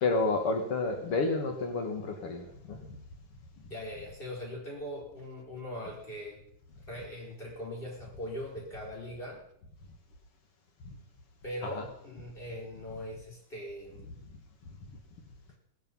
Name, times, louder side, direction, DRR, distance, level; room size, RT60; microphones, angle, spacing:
voice 1, 0.0-2.8 10.9-11.0 11.6-11.8, left 3 dB, 90° left, 4 dB, 2.8 m, -30 dB
voice 2, 3.7-6.4 6.9-9.4 11.4-14.2, equal, 25° left, -3 dB, 5.4 m, -41 dB
18.5 x 11.0 x 5.6 m, 0.70 s
omnidirectional pair, 2.4 m